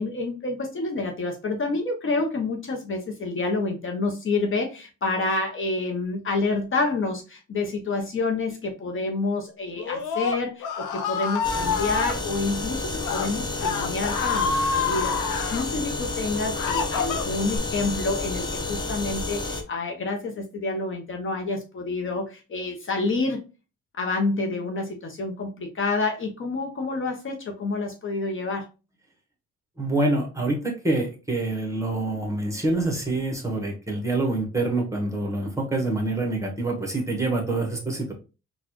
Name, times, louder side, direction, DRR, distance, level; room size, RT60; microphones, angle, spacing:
voice 1, 0.0-23.4 24.0-28.7, left 3 dB, 45° left, 0.8 m, -28 dB
Screaming, 9.8-12.1 12.9-13.3 13.6-15.6 16.2-17.6, left 6 dB, 85° left, 0.6 m, -27 dB
sound 1, 11.4-19.6, left 2 dB, 15° left, 0.6 m, -30 dB
voice 2, 29.8-38.1, right 2 dB, 10° right, 1.2 m, -26 dB
4.0 x 2.4 x 3.0 m
cardioid pair, 90°, 30 cm